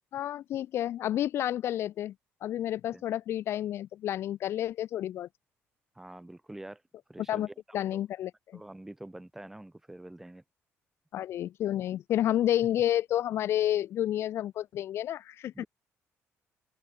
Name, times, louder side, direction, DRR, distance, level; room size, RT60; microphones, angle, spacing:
voice 1, 0.1-2.1 2.4-5.3 7.3-7.5 7.7-8.6 11.1-15.6, left 12 dB, 60° left, 0.5 m, -30 dB
voice 2, 6.0-6.8 7.1-7.8 8.5-10.4 15.5-15.7, right 1 dB, 5° right, 2.0 m, -46 dB
open air
cardioid pair, 155°, 5 cm